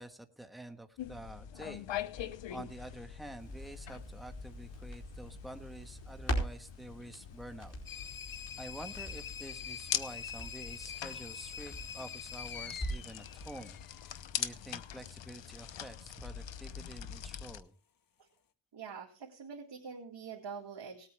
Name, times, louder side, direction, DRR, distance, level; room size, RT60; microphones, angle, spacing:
voice 1, 0.0-1.9 2.1-2.2 2.5-7.7 8.6-13.8 14.4-17.7, right 1 dB, ahead, 6 dB, 1.3 m, -48 dB
sound 1, 1.0-17.6, left 10 dB, 90° left, 0.9 m, -43 dB
Crackle, 3.4-13.2 13.5-13.6, equal, 35° left, 4.6 m, -43 dB
sound 2, 7.9-14.2, left 7 dB, 50° left, 1.0 m, -45 dB
voice 2, 18.7-21.1, right 6 dB, 65° right, -1 dB, 2.3 m, -45 dB
19.0 x 8.8 x 3.4 m, 0.35 s
cardioid pair, 75°, 44 cm